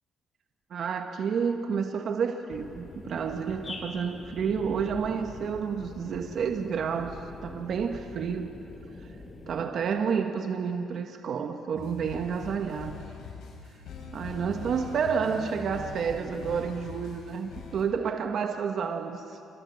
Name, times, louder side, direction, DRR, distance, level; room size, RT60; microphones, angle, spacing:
voice 1, 0.7-8.5 9.5-13.0 14.1-19.2, right 6 dB, 60° right, 5 dB, 1.9 m, -30 dB
sound 1, 2.5-9.6, left 2 dB, 35° left, 6.9 m, -43 dB
sound 2, 11.7-17.8, left 5 dB, 80° left, 6.8 m, -42 dB
29.0 x 26.0 x 7.4 m, 2.6 s
cardioid pair, 90°, 0 cm